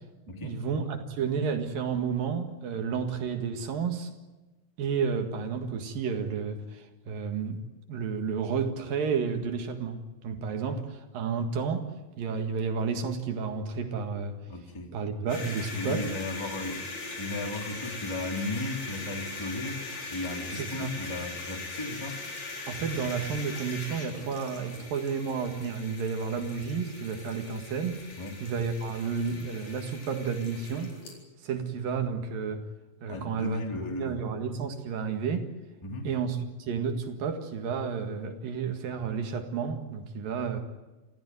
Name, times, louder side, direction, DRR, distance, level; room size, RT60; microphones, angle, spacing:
voice 1, 0.4-4.1 4.8-7.6 7.9-11.9 12.2-14.4 14.9-16.0 20.5-20.9 22.7-28.0 28.4-31.0 31.4-32.7 33.0-35.4 36.0-40.6, right 6 dB, 60° right, 6 dB, 3.4 m, -31 dB
voice 2, 14.5-14.9 15.7-16.9 17.2-19.8 20.1-22.2 28.2-28.4 33.1-34.1 35.8-36.1, left 2 dB, 10° left, 3 dB, 2.3 m, -35 dB
sound 1, 15.3-31.2, left 3 dB, 45° left, 5.3 m, -40 dB
26.5 x 16.0 x 9.5 m, 1.1 s
omnidirectional pair, 4.7 m